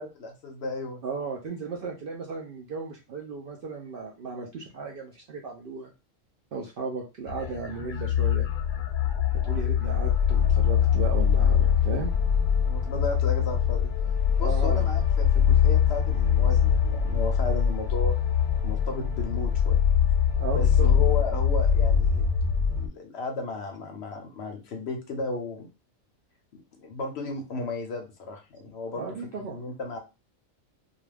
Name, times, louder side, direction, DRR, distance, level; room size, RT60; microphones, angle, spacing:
voice 1, 0.0-1.0 9.4-9.6 12.6-13.9 14.4-18.2 18.6-19.8 20.5-22.3 22.7-25.7 26.8-30.0, left 3 dB, 65° left, 3 dB, 0.7 m, -34 dB
voice 2, 1.0-5.9 6.5-8.5 9.4-12.1 14.4-14.8 20.4-20.9 28.9-29.6, right 4 dB, 70° right, 0 dB, 0.5 m, -35 dB
sound 1, 7.3-22.9, left 8 dB, 85° left, 0.4 m, -23 dB
2.4 x 2.3 x 3.2 m, 0.28 s
omnidirectional pair, 1.4 m